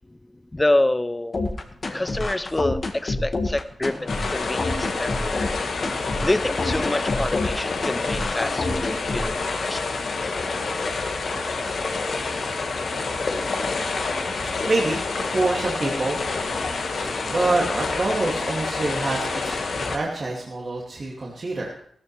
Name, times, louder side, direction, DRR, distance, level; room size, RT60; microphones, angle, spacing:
voice 1, 0.5-1.5 1.9-5.4 6.2-9.9, left 1 dB, 20° left, 14 dB, 0.6 m, -27 dB
sound 1, 1.3-9.3, left 2 dB, 50° left, 1.7 m, -28 dB
sound 2, 4.1-20.0, left 3 dB, 75° left, 1.7 m, -28 dB
voice 2, 14.4-16.3 16.6-21.8, right 2 dB, 50° right, -3 dB, 2.4 m, -27 dB
16.0 x 14.0 x 3.3 m, 0.62 s
cardioid pair, 75°, 0 cm